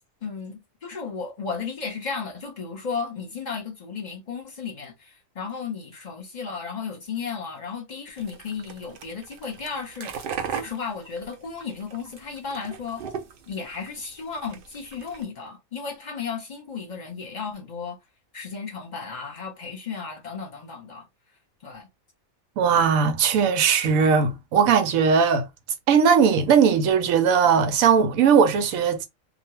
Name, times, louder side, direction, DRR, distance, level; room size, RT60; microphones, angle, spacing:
voice 1, 0.2-10.1 10.5-13.0 13.5-18.0 18.3-21.1 21.6-21.9, left 5 dB, 40° left, 0.9 m, -34 dB
sound 1, 8.2-15.2, right 7 dB, 60° right, 0.6 m, -37 dB
voice 2, 22.6-25.5 25.9-29.0, right 6 dB, 85° right, 1.1 m, -19 dB
2.4 x 2.3 x 2.9 m
omnidirectional pair, 1.4 m